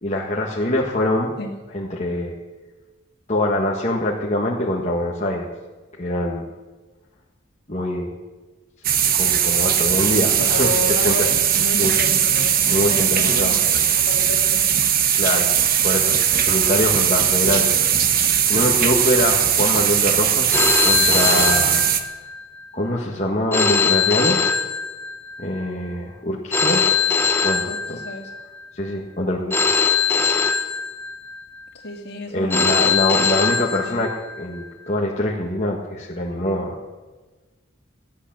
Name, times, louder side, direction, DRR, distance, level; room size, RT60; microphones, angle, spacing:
voice 1, 0.0-1.3 1.7-2.3 3.3-5.5 6.0-6.5 7.7-8.1 9.2-11.3 11.8-11.9 12.6-13.6 15.2-15.5 15.8-16.2 16.5-17.7 18.2-20.5 20.8-21.9 22.7-24.4 25.4-27.0 27.4-28.0 28.7-29.7 32.3-36.8, left 1 dB, 35° left, -3 dB, 1.6 m, -24 dB
sound 1, 8.8-22.0, right 9 dB, 45° right, 1.1 m, -19 dB
voice 2, 10.3-14.4 27.7-28.3 31.8-34.0, left 1 dB, 55° left, 1 dB, 2.9 m, -32 dB
Telephone, 20.5-22.4 23.5-25.4 26.5-28.4 29.5-31.4 32.5-34.4, left 5 dB, 10° left, 0.9 m, -21 dB
15.0 x 11.5 x 7.5 m, 1.3 s
head